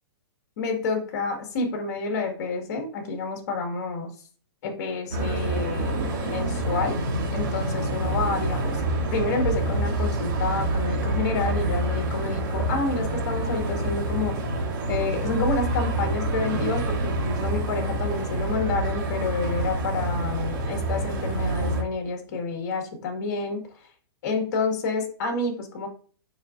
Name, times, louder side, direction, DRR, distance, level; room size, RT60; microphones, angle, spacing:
voice 1, 0.6-4.1 4.6-7.0 7.3-8.8 9.1-23.6 24.2-25.9, left 4 dB, 45° left, 3 dB, 1.9 m, -29 dB
sound 1, 5.1-21.8, right 2 dB, 50° right, 2.5 m, -27 dB
7.0 x 5.3 x 2.6 m, 0.43 s
hypercardioid pair, 165°, 13 cm